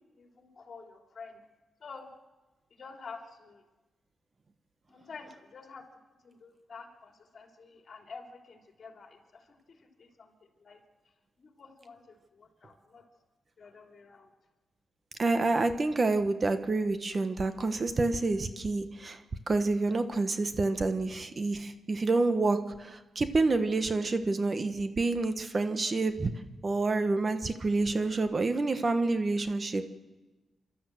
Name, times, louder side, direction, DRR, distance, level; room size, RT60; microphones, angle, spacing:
voice 1, 0.1-1.4 1.8-2.2 2.7-3.6 4.9-5.9 6.2-10.8 11.4-13.1 13.6-14.3, left 4 dB, 50° left, 2 dB, 3.3 m, -49 dB
voice 2, 15.2-19.2 19.5-26.3 26.6-29.8, right 3 dB, 35° right, 9 dB, 1.2 m, -28 dB
29.0 x 13.0 x 7.8 m, 1.2 s
cardioid pair, 100°, 0 cm